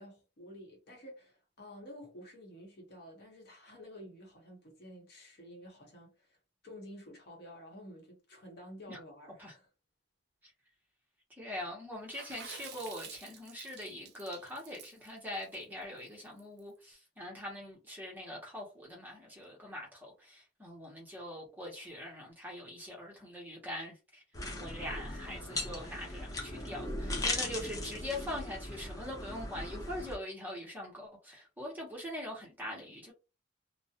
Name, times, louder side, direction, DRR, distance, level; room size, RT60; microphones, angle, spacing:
voice 1, 0.0-6.4 6.6-9.7, equal, 60° left, 0.9 m, -51 dB
voice 2, 11.4-33.1, left 1 dB, 10° right, 0.8 m, -43 dB
Water / Splash splatter, 12.1-16.6, right 7 dB, 60° right, 0.4 m, -50 dB
sound 1, 24.3-30.2, left 1 dB, 20° left, 0.5 m, -38 dB
2.3 x 2.0 x 2.7 m
head